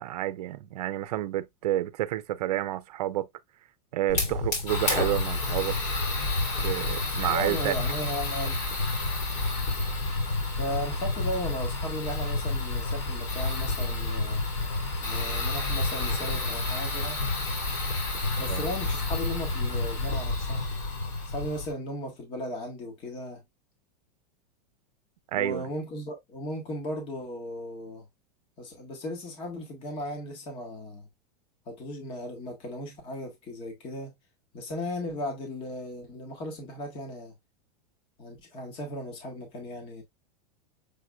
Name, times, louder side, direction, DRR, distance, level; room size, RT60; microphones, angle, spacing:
voice 1, 0.0-3.3 3.9-5.8 6.6-7.7 18.5-18.7 25.3-25.6, right 13 dB, 75° right, 0.6 m, -29 dB
Fire, 4.1-21.7, left 2 dB, 45° left, 2.5 m, -29 dB
voice 2, 7.3-8.7 10.6-14.4 15.0-17.2 18.4-20.6 21.2-23.4 25.4-28.1 28.6-31.1 31.7-34.1 34.5-37.3 38.2-40.0, left 1 dB, 25° left, 1.4 m, -36 dB
6.8 x 2.9 x 2.3 m
supercardioid pair, 165°, 20 cm